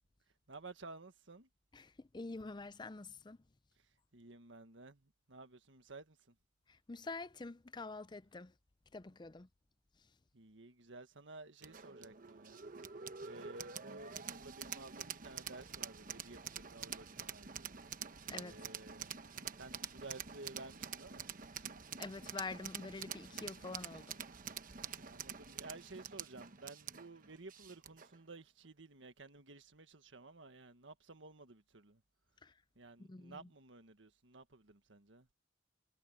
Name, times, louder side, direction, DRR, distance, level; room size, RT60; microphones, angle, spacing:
voice 1, 0.5-1.5 3.8-6.4 9.1-9.4 10.3-12.6 13.2-17.7 18.3-19.1 19.5-21.3 25.0-32.0 32.8-35.3, right 3 dB, 85° right, 1.7 m, -54 dB
voice 2, 1.7-3.4 6.9-8.5 8.9-9.5 18.3-18.5 22.0-24.2 32.4-32.5 33.1-33.3, left 3 dB, 25° left, 0.5 m, -46 dB
sound 1, 11.6-28.2, right 7 dB, 50° right, 1.1 m, -47 dB
head